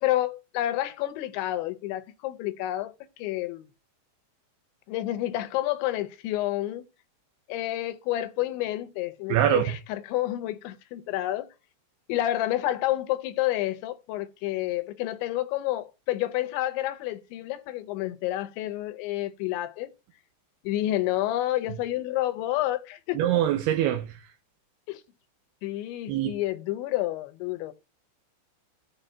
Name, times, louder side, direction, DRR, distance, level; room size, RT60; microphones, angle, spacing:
voice 1, 0.0-2.9 3.2-3.7 4.9-6.8 7.5-11.5 12.1-19.9 20.6-23.4 24.9-25.0 25.6-27.7, left 14 dB, 85° left, 3.2 m, -29 dB
voice 2, 9.3-9.7 23.1-24.1 26.1-26.4, right 11 dB, 75° right, 2.6 m, -24 dB
16.5 x 5.5 x 2.8 m
omnidirectional pair, 5.2 m